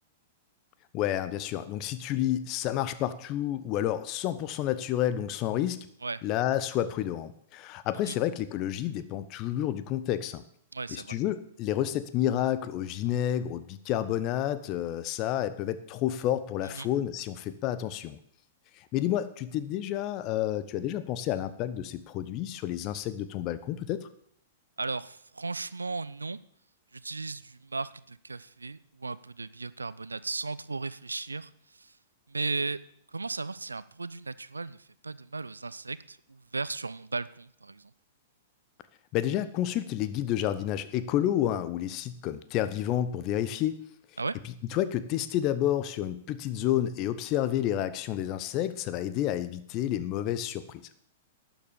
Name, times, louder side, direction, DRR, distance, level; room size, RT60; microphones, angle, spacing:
voice 1, 0.9-5.9 6.2-10.4 10.9-18.2 18.8-24.0 39.1-43.8 44.7-50.8, left 12 dB, 35° left, 13 dB, 0.9 m, -30 dB
voice 2, 10.7-11.2 16.7-16.9 24.8-26.4 26.9-31.9 32.3-32.8 33.1-37.9 44.2-44.4, right 3 dB, 80° right, 17 dB, 0.5 m, -36 dB
11.5 x 7.3 x 7.0 m, 0.66 s
figure-of-eight pair, 105°, 0 cm